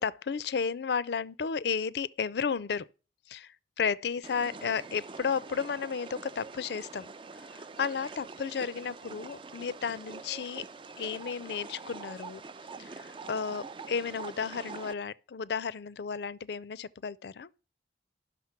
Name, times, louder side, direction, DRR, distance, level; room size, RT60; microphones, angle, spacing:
voice 1, 0.0-2.9 3.3-7.1 7.4-10.6 11.0-12.4 12.8-17.5, left 6 dB, 65° left, 0.4 m, -33 dB
sound 1, 4.2-14.9, right 4 dB, 30° right, 0.4 m, -45 dB
11.0 x 6.2 x 5.8 m
head